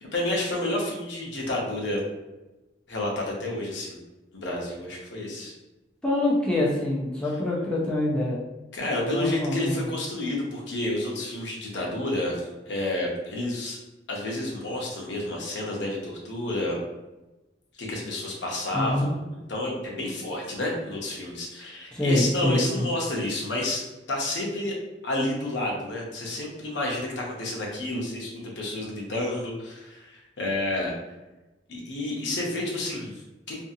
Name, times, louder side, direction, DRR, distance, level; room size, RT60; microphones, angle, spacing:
voice 1, 0.0-2.0 2.9-4.0 4.3-5.5 8.7-13.8 14.1-16.8 17.8-24.7 25.0-28.3 28.6-30.9 31.7-33.6, left 1 dB, 80° left, -2 dB, 0.8 m, -30 dB
voice 2, 6.0-8.4 9.1-9.9 18.7-19.1 21.9-22.9, left 1 dB, 5° left, -6 dB, 0.5 m, -25 dB
2.7 x 2.4 x 2.7 m, 1.1 s
head